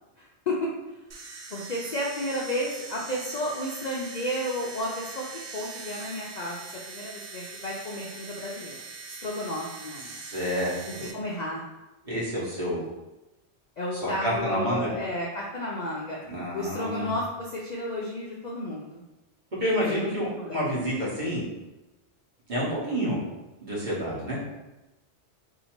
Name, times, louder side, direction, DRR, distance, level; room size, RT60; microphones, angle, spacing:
voice 1, 0.2-0.7 1.5-5.2 5.5-8.8 9.1-10.1 11.1-11.6 13.8-16.2 16.5-19.0 19.9-20.8, left 1 dB, 55° left, -3 dB, 0.5 m, -32 dB
sound 1, 1.1-11.1, right 4 dB, 65° right, 0.7 m, -42 dB
voice 2, 10.1-11.1 12.0-12.9 13.9-14.9 16.3-17.1 19.5-21.4 22.5-23.2 23.6-24.4, equal, 45° right, -7 dB, 1.3 m, -29 dB
2.8 x 2.7 x 4.3 m, 1.0 s
omnidirectional pair, 1.2 m